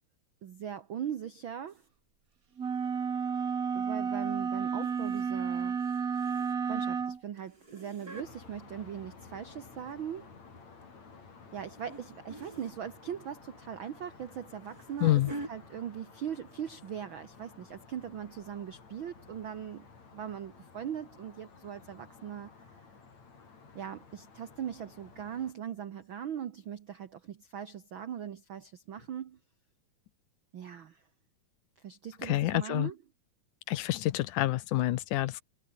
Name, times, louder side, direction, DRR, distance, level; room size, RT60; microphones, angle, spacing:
voice 1, 0.4-1.8 3.7-5.8 6.7-10.3 11.5-15.2 15.5-19.9 20.1-22.7 23.7-29.4 30.5-31.0 31.8-33.0, right 9 dB, 85° right, 1.1 m, -40 dB
sound 1, 1.7-1.9 4.8-5.3 5.6-6.8 7.4-8.3 9.3-10.1 10.6-10.9 11.9-12.0 12.3-12.8 14.3-15.5 16.4-16.6 16.9-17.0 17.5-17.6, right 2 dB, 25° right, 7.6 m, -46 dB
sound 2, 2.6-7.2, right 6 dB, 45° right, 1.1 m, -31 dB
sound 3, 8.1-25.5, left 5 dB, 50° left, 5.8 m, -54 dB
voice 2, 15.0-15.3 32.2-32.9 33.7-35.4, left 15 dB, 70° left, 2.2 m, -28 dB
omnidirectional pair, 4.0 m